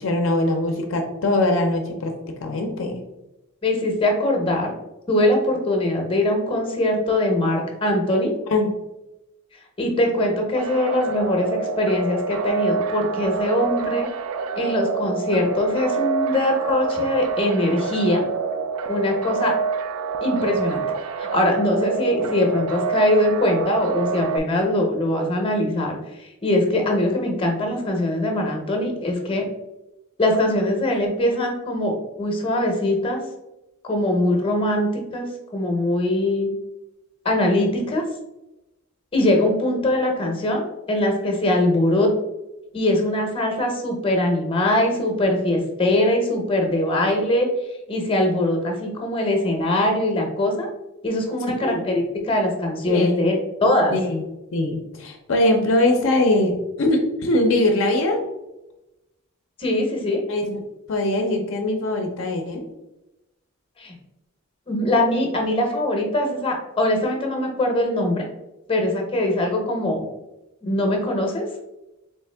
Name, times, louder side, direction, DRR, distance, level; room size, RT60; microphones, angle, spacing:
voice 1, 0.0-2.1 2.4-3.0 8.5-8.7 51.6-51.9 52.9-53.2 53.9-54.2 54.5-58.2 60.3-60.6 60.9-62.7, left 1 dB, 65° left, 3 dB, 0.5 m, -22 dB
voice 2, 3.6-4.7 5.1-8.3 9.8-14.1 14.6-18.2 18.9-19.5 20.2-20.8 21.2-25.9 26.2-29.5 30.2-33.2 33.8-36.5 37.2-38.0 39.1-42.1 42.7-47.5 47.9-50.7 51.0-53.3 53.6-53.9 59.6-60.2 63.8-63.9 64.7-68.2 68.7-70.0 70.6-71.4, left 1 dB, 25° left, 2 dB, 0.7 m, -22 dB
sound 1, 10.6-24.4, right 5 dB, 85° right, 0.3 m, -27 dB
3.5 x 3.1 x 3.3 m, 0.96 s
head